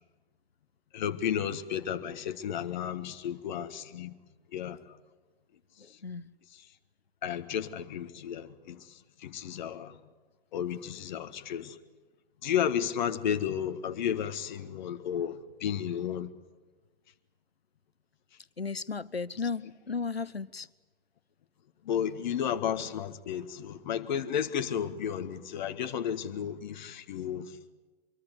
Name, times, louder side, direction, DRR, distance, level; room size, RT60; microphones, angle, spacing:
voice 1, 0.9-4.2 4.5-5.0 5.9-6.0 6.5-6.7 7.2-10.0 10.5-11.8 12.4-16.3 21.8-27.6, left 9 dB, 50° left, 1.7 m, -33 dB
voice 2, 5.8-6.3 18.6-20.7, left 5 dB, 90° left, 0.8 m, -35 dB
25.0 x 24.0 x 8.1 m
figure-of-eight pair, 110°, 30 cm